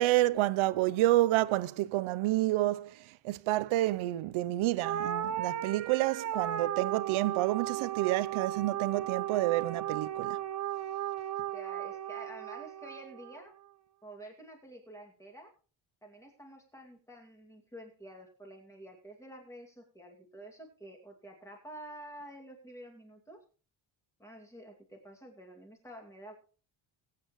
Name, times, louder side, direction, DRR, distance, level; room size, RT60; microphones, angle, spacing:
voice 1, 0.0-2.9 3.2-10.4, right 16 dB, 80° right, 0.7 m, -29 dB
sound 1, 4.8-13.4, right 11 dB, 35° right, 0.6 m, -35 dB
voice 2, 11.5-13.5 14.0-15.5 16.0-23.4 24.2-26.4, right 1 dB, 5° left, 2.3 m, -49 dB
21.5 x 8.6 x 3.1 m
cardioid pair, 175°, 48 cm